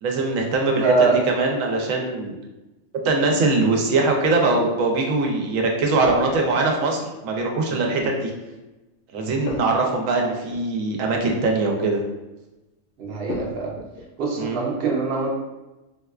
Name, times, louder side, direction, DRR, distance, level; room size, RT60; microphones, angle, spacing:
voice 1, 0.0-0.9 1.3-2.3 3.0-8.3 9.1-12.0 14.4-14.6, right 3 dB, 85° right, 1 dB, 1.0 m, -22 dB
voice 2, 0.8-1.2 13.0-13.7 14.2-15.3, right 4 dB, 55° right, -2 dB, 0.8 m, -22 dB
sound 1, 6.0-6.9 9.5-11.0 11.3-11.5 13.3-14.1, left 2 dB, 60° left, 0.6 m, -36 dB
4.1 x 2.2 x 2.3 m, 1.0 s
omnidirectional pair, 1.3 m